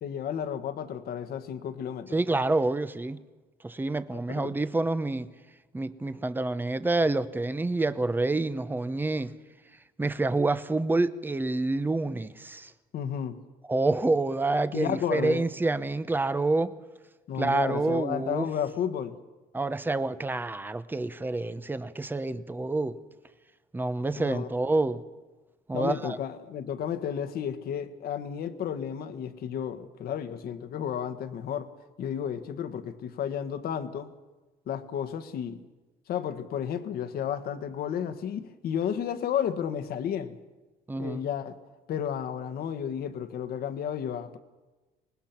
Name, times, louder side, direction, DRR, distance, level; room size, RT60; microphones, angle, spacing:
voice 1, 0.0-2.2 4.1-4.6 12.9-13.4 14.7-15.4 17.3-19.2 24.1-24.5 25.7-31.7 32.0-34.1 34.7-35.6 36.1-40.4 41.0-41.6 41.9-44.4, left 8 dB, 65° left, 1.6 m, -32 dB
voice 2, 2.1-3.2 3.6-5.3 5.7-9.3 10.0-12.7 13.7-16.7 17.4-18.5 19.5-23.0 23.7-25.0 25.7-26.2 40.9-41.3, right 2 dB, 10° right, 0.9 m, -27 dB
25.5 x 19.5 x 6.0 m
cardioid pair, 110°, 17 cm